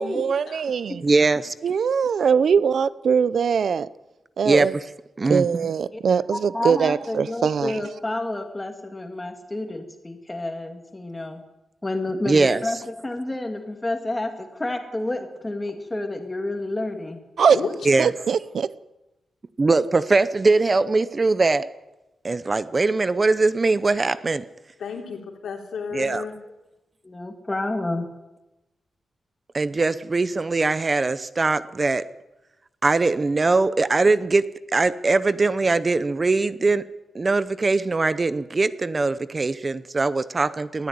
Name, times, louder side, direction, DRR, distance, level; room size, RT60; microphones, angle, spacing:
voice 1, 0.0-1.0 1.6-3.9 4.4-4.7 5.3-7.8 17.4-17.6 18.0-18.7, right 6 dB, 65° right, 0.7 m, -21 dB
voice 2, 1.0-1.5 4.5-4.8 5.2-5.7 12.3-12.6 17.9-18.1 19.6-21.7 22.2-24.4 25.9-26.2 29.5-32.1 32.8-36.8 37.1-40.9, right 3 dB, 25° right, 0.7 m, -21 dB
voice 3, 6.3-11.4 11.8-17.2 27.0-28.1, left 2 dB, 15° left, 2.5 m, -29 dB
voice 4, 17.5-18.1 24.8-26.5, left 5 dB, 85° left, 3.5 m, -33 dB
20.0 x 13.5 x 9.5 m
wide cardioid pair, 160°, 0 cm